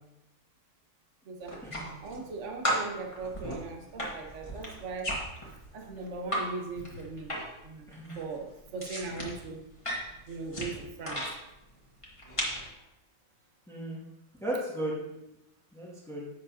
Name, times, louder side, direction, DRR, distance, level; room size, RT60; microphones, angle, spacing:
sound 1, 1.4-2.3 2.6-6.5 6.8-7.7 7.9-11.3 12.0-12.7, equal, 20° left, 1.8 m, -35 dB
voice 1, 2.0-5.1 5.7-7.3 7.6-7.9 8.1-9.6 10.3-11.2, right 3 dB, 50° right, 2 dB, 1.4 m, -39 dB
voice 2, 13.7-14.0 14.4-15.0 15.7-16.2, right 1 dB, ahead, -6 dB, 1.9 m, -35 dB
11.0 x 7.4 x 2.8 m, 0.89 s
omnidirectional pair, 1.7 m